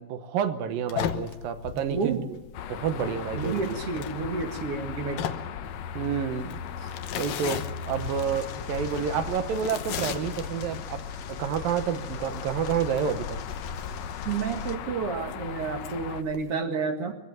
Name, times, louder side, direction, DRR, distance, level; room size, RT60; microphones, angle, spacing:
voice 1, 0.0-2.4 2.7-3.8 5.9-6.6 7.2-11.0 11.3-13.4, right 7 dB, 75° right, 10 dB, 2.7 m, -29 dB
sound 1, 0.9-16.5, left 9 dB, 70° left, 2.6 m, -39 dB
voice 2, 1.9-2.3 3.3-5.2 14.3-17.1, right 5 dB, 45° right, 5 dB, 2.3 m, -30 dB
sound 2, 2.5-16.2, left 7 dB, 85° left, 1.4 m, -38 dB
sound 3, 8.0-14.8, left 4 dB, 55° left, 2.4 m, -42 dB
22.5 x 16.0 x 9.1 m, 0.99 s
omnidirectional pair, 4.3 m